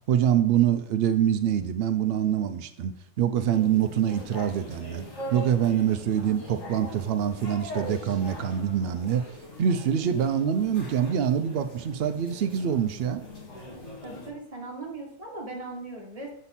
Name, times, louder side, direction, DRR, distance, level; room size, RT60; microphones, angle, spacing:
voice 1, 0.1-5.1 5.3-9.2 9.6-13.2, right 9 dB, 90° right, 9 dB, 0.5 m, -25 dB
sound 1, 3.5-14.3, equal, 55° left, 2.7 m, -41 dB
voice 2, 14.0-16.3, right 2 dB, 25° right, -1 dB, 1.5 m, -38 dB
7.2 x 5.2 x 4.1 m, 0.70 s
omnidirectional pair, 1.6 m